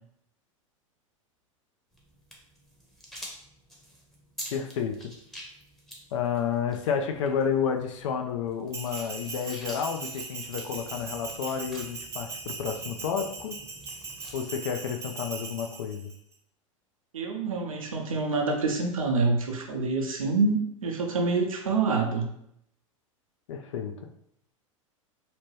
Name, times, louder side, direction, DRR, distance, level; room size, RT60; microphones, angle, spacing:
sound 1, 1.9-14.4, equal, ahead, 0.8 m, -48 dB
voice 1, 4.5-5.1 6.1-13.6 14.3-16.1 23.5-23.9, left 7 dB, 65° left, 5 dB, 0.5 m, -30 dB
Bell, 8.7-16.2, right 4 dB, 15° right, 0.4 m, -39 dB
voice 2, 17.1-22.3, right 3 dB, 80° right, 2 dB, 0.7 m, -27 dB
2.9 x 2.2 x 3.1 m, 0.72 s
figure-of-eight pair, 90°, 17 cm